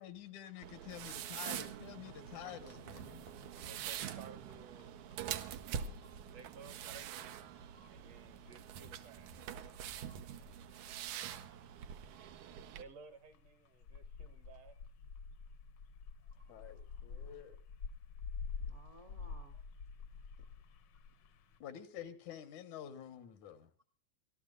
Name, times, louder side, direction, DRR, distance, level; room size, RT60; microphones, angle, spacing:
voice 1, 0.0-3.3 16.5-17.6 21.6-23.7, left 10 dB, 85° left, 2.7 m, -49 dB
sound 1, 0.6-12.8, right 9 dB, 85° right, 2.3 m, -45 dB
sound 2, 1.9-21.6, left 5 dB, 65° left, 1.3 m, -51 dB
voice 2, 3.6-4.9 6.3-7.4 7.9-9.4 12.8-14.8, right 5 dB, 65° right, 2.0 m, -56 dB
voice 3, 5.7-6.3 7.7-8.0 12.1-12.4 16.2-17.5 18.6-19.6 20.4-20.8, right 1 dB, 45° right, 0.9 m, -65 dB
27.0 x 13.0 x 2.5 m
omnidirectional pair, 3.3 m